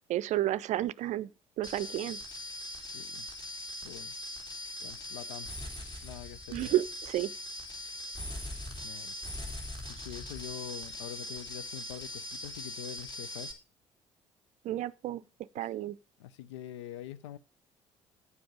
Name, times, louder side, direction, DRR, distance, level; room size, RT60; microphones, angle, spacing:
voice 1, 0.1-1.3 1.6-2.2 6.5-7.3 14.6-15.2 15.5-16.0, right 13 dB, 50° right, 0.5 m, -31 dB
sound 1, 1.6-13.5, left 1 dB, 30° left, 3.0 m, -41 dB
voice 2, 2.9-3.3 3.8-4.1 4.8-5.5 6.0-6.7 8.8-9.1 9.6-13.5 16.2-17.4, left 12 dB, 75° left, 0.5 m, -45 dB
9.7 x 7.7 x 5.1 m
figure-of-eight pair, 50°, 15 cm